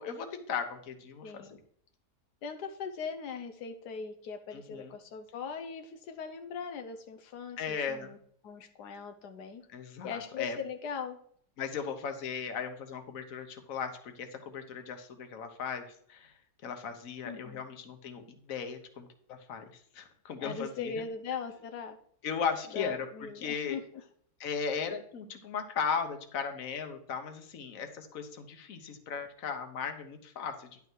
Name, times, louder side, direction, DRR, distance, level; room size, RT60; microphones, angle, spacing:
voice 1, 0.0-1.6 4.5-4.9 7.6-8.1 9.7-10.6 11.6-16.3 16.6-21.0 22.2-23.8 24.4-30.8, left 6 dB, 60° left, 7 dB, 1.4 m, -37 dB
voice 2, 1.2-1.6 2.4-8.2 8.4-9.6 10.0-11.2 17.2-17.6 20.4-22.0 22.7-23.8, left 6 dB, 85° left, 7 dB, 1.3 m, -40 dB
10.5 x 5.7 x 4.6 m, 0.62 s
omnidirectional pair, 1.7 m